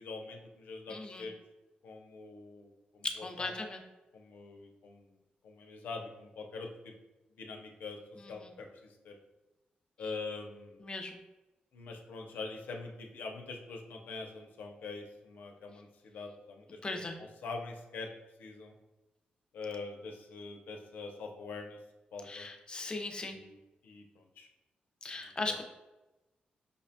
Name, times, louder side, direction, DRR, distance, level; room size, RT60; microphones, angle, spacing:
voice 1, 0.0-1.3 1.8-3.5 4.1-6.9 7.4-9.2 10.0-10.8 11.7-18.1 18.4-18.7 19.5-21.8 22.1-22.5 23.2-24.5 25.2-25.5, left 3 dB, 85° left, 2 dB, 0.4 m, -44 dB
voice 2, 0.9-1.3 3.0-3.8 8.4-8.5 10.8-11.1 16.8-17.2 22.3-23.4 25.0-25.6, left 3 dB, 30° left, 5 dB, 0.5 m, -38 dB
5.2 x 2.1 x 2.6 m, 1.0 s
cardioid pair, 110°, 3 cm